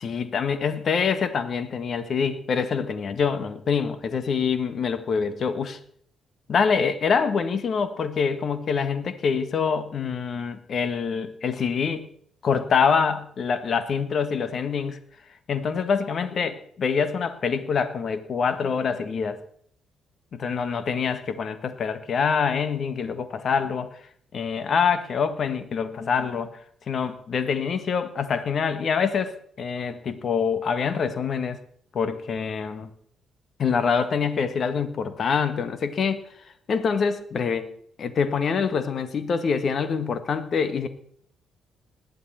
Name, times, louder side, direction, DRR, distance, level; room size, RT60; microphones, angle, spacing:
voice 1, 0.0-5.8 6.5-12.1 12.4-15.0 15.5-19.4 20.3-24.0 24.3-26.5 26.9-31.6 31.9-32.9 33.6-36.2 36.7-37.7 38.0-40.9, left 6 dB, 50° left, 12 dB, 1.7 m, -25 dB
20.0 x 12.5 x 4.4 m, 0.64 s
hypercardioid pair, 45°, 0 cm